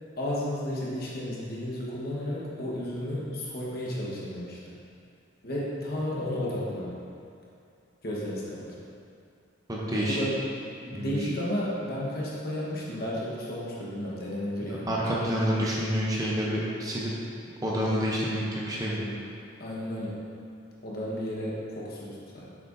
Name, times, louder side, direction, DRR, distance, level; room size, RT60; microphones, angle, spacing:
voice 1, 0.2-4.6 5.4-6.9 8.0-8.7 9.9-10.4 10.8-14.9 19.6-20.2 20.8-22.5, left 1 dB, 50° left, -6 dB, 1.3 m, -33 dB
voice 2, 9.7-10.2 10.9-11.3 14.7-17.1 17.6-19.1, equal, 20° right, -5 dB, 0.7 m, -28 dB
7.6 x 6.0 x 2.7 m, 2.5 s
head